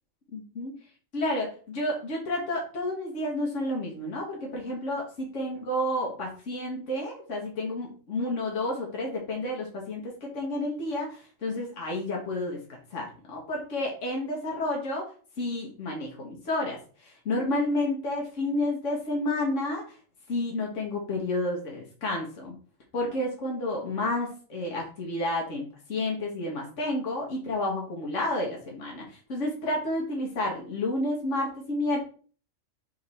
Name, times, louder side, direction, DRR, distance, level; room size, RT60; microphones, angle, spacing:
voice 1, 0.3-0.7 1.1-12.6 12.9-15.0 15.4-19.8 20.3-22.5 22.9-32.0, left 1 dB, 70° left, -2 dB, 1.9 m, -30 dB
5.9 x 3.8 x 4.3 m, 0.41 s
omnidirectional pair, 1.3 m